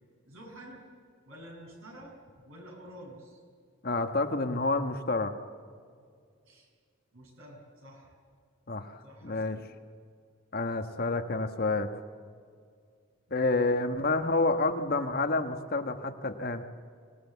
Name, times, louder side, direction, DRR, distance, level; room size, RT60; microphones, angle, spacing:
voice 1, 0.3-0.9 1.3-2.1 2.5-3.4 6.5-6.7 7.1-8.1 9.0-9.7, right 1 dB, 85° right, 0 dB, 7.4 m, -49 dB
voice 2, 3.8-5.4 8.7-8.9 9.2-9.6 10.5-11.9 13.3-16.6, left 3 dB, 45° left, 6 dB, 1.3 m, -28 dB
25.0 x 19.0 x 8.3 m, 2.2 s
head